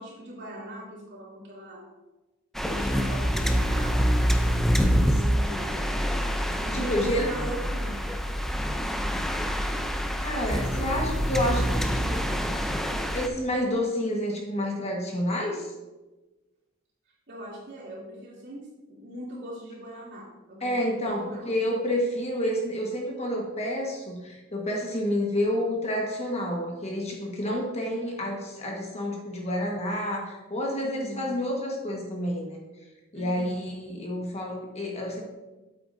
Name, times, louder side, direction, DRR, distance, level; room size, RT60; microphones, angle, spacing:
voice 1, 0.0-1.9 2.6-4.0 5.0-6.0 6.6-8.1 17.3-21.5 30.8-31.4 33.1-33.5, equal, 60° right, -5 dB, 2.8 m, -40 dB
sound 1, 2.5-13.3, equal, ahead, 0.5 m, -26 dB
voice 2, 6.7-7.3 10.2-12.3 13.1-15.7 20.6-32.6 33.1-35.2, equal, 30° left, 0 dB, 1.4 m, -29 dB
8.4 x 8.2 x 2.6 m, 1.1 s
head